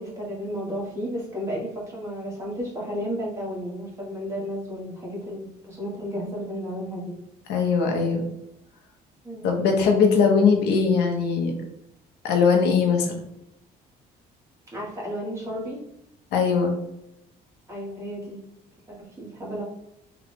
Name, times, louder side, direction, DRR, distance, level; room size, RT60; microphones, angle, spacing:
voice 1, 0.0-7.1 9.2-9.6 14.7-15.8 17.7-18.4 18.9-19.6, equal, 15° right, -4 dB, 1.5 m, -33 dB
voice 2, 7.5-8.2 9.4-11.5 12.2-13.1 16.3-16.7, left 5 dB, 80° left, 2 dB, 0.8 m, -20 dB
3.7 x 2.4 x 3.5 m, 0.83 s
cardioid pair, 110°, 17 cm